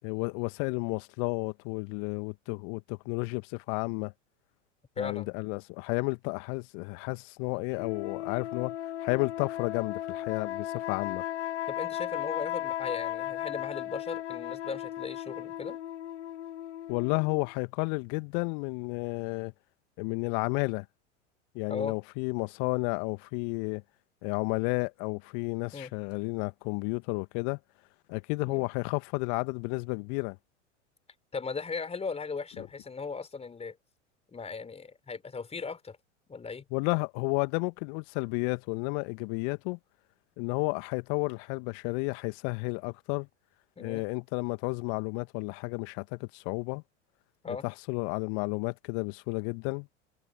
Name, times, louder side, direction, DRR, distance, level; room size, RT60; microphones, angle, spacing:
voice 1, 0.0-4.1 5.0-8.7 9.0-11.2 16.9-19.5 20.0-20.9 21.6-23.8 24.2-27.6 28.1-30.4 32.6-32.7 36.7-39.8 40.4-43.3 43.8-46.8 47.5-49.9, left 36 dB, 50° left, 1.8 m, -32 dB
voice 2, 5.0-5.3 11.7-15.8 21.7-22.0 25.7-25.9 28.5-28.7 31.3-33.8 34.3-36.0 36.3-36.6 43.8-44.1 47.4-47.6, left 5 dB, 15° left, 4.4 m, -37 dB
sound 1, 7.8-17.5, left 12 dB, 70° left, 2.5 m, -36 dB
figure-of-eight pair, 85°, 37 cm